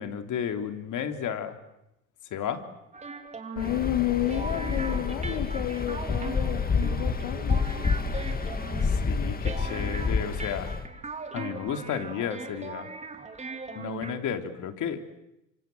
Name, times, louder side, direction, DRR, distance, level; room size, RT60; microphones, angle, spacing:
voice 1, 0.0-1.6 2.2-2.6 8.8-10.7 11.3-12.9 13.7-15.0, left 8 dB, 50° left, 7 dB, 3.2 m, -33 dB
sound 1, 2.9-14.2, right 3 dB, 15° right, 3.3 m, -39 dB
voice 2, 3.6-7.7, left 15 dB, 75° left, 7 dB, 1.9 m, -31 dB
Waves surf, 3.6-10.9, left 4 dB, 25° left, 2.2 m, -29 dB
27.0 x 26.0 x 7.9 m, 0.88 s
supercardioid pair, 95°, 38 cm